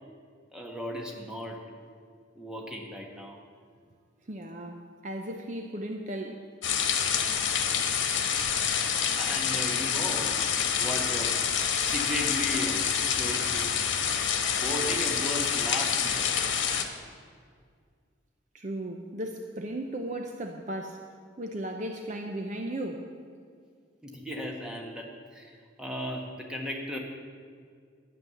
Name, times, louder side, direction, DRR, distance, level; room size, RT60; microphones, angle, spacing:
voice 1, 0.5-1.6 2.3-3.4 9.2-10.4 10.8-11.4 11.8-14.1 14.5-16.3 24.0-27.0, equal, 5° right, -1 dB, 1.5 m, -36 dB
voice 2, 4.3-6.5 18.5-21.1 21.4-23.1, right 1 dB, 40° right, 3 dB, 0.7 m, -36 dB
sound 1, 6.6-16.8, left 7 dB, 70° left, 1.2 m, -27 dB
12.0 x 9.4 x 7.1 m, 2.1 s
head